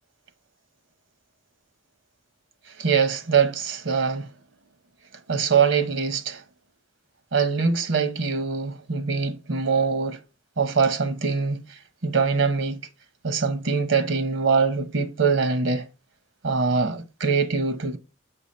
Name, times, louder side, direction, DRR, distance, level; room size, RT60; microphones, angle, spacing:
voice 1, 2.8-4.3 5.3-6.4 7.3-10.2 10.6-12.8 13.2-15.9 16.4-18.0, right 5 dB, 75° right, 0.8 m, -23 dB
7.0 x 5.5 x 4.2 m
head